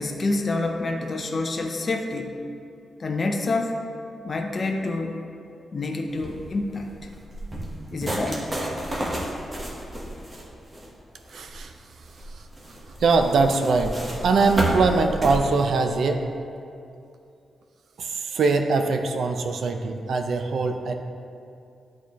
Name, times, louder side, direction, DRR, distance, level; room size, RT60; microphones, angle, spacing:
voice 1, 0.0-2.3 3.0-3.8 4.2-5.2 5.7-6.9 7.9-8.5, left 2 dB, 40° left, 2 dB, 0.6 m, -27 dB
sound 1, 6.1-15.4, right 1 dB, 30° right, 1.2 m, -32 dB
voice 2, 11.3-11.7 12.3-12.5 12.8-16.2 18.0-21.0, right 4 dB, 70° right, 6 dB, 0.5 m, -22 dB
10.5 x 4.2 x 3.1 m, 2.6 s
cardioid pair, 110°, 0 cm